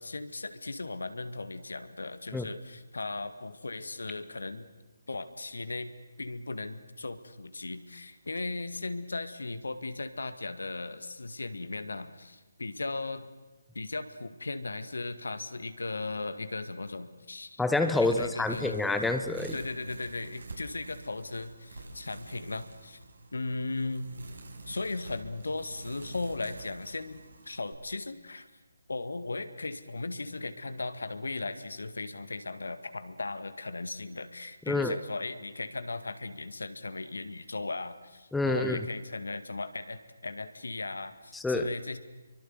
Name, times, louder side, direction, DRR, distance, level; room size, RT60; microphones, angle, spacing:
voice 1, 0.0-4.7 5.1-5.9 6.2-13.3 13.7-17.6 18.0-18.8 19.5-23.0 23.3-24.1 24.7-28.5 28.9-42.0, left 3 dB, 70° left, 10 dB, 2.0 m, -37 dB
voice 2, 17.6-19.5 34.7-35.0 38.3-38.8 41.3-41.7, left 2 dB, 5° left, 7 dB, 1.0 m, -27 dB
sound 1, 17.8-27.7, right 2 dB, 65° right, 7.1 m, -47 dB
28.0 x 23.5 x 8.0 m, 1.2 s
figure-of-eight pair, 145°, 0 cm